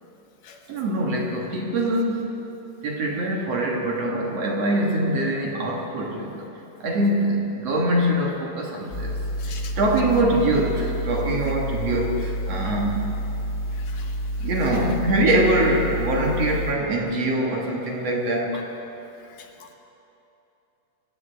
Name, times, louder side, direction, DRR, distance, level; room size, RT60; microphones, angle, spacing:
voice 1, 0.7-2.3 2.8-6.5 6.8-13.1 14.4-18.6, right 1 dB, 55° right, -1 dB, 2.6 m, -23 dB
sound 1, 8.9-16.7, equal, 30° left, 1.4 m, -29 dB
voice 2, 9.4-9.8 12.5-12.6 13.7-14.5 18.5-18.6 19.2-19.7, left 7 dB, 80° left, 3 dB, 2.8 m, -45 dB
24.5 x 16.0 x 3.5 m, 2.9 s
omnidirectional pair, 3.7 m